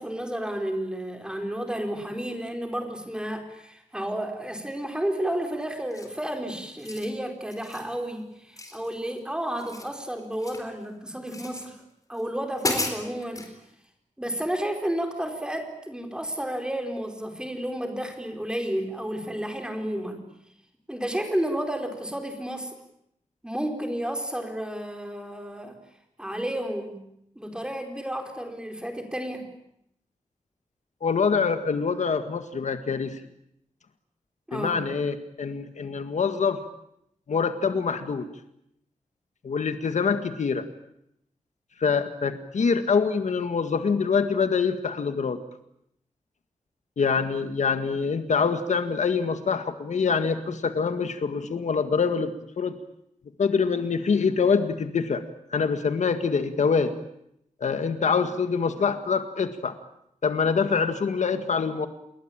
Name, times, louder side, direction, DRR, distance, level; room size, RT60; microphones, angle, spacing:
voice 1, 0.0-11.8 12.1-13.5 14.2-20.2 20.9-22.7 23.4-25.7 26.2-27.0 27.3-29.4 34.5-34.8, right 1 dB, 5° right, 4 dB, 4.8 m, -31 dB
sound 1, 5.9-6.3 6.7-7.1 7.5-7.9 8.6-9.2 9.5-10.7 11.3-11.7 12.2-12.3 12.6-13.5, left 2 dB, 25° left, 4.3 m, -33 dB
voice 2, 31.0-33.2 34.5-36.6 37.3-38.3 39.4-40.7 41.8-45.4 47.0-52.8 53.4-55.2 55.5-56.9 57.6-59.7 60.2-61.9, left 5 dB, 70° left, 9 dB, 1.8 m, -25 dB
29.5 x 21.5 x 8.9 m, 0.78 s
wide cardioid pair, 170°, 13 cm